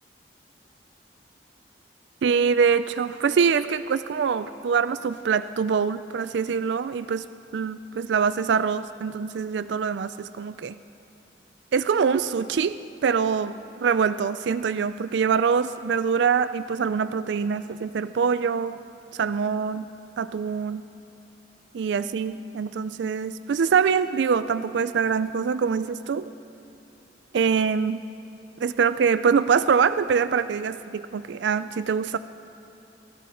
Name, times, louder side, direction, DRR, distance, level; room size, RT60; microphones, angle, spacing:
voice 1, 2.2-7.2 7.5-10.7 11.7-12.8 13.0-18.8 19.1-19.9 20.2-20.8 21.7-26.3 27.3-28.0 28.6-32.2, right 6 dB, 75° right, 14 dB, 0.4 m, -24 dB
19.5 x 15.0 x 5.0 m, 2.9 s
head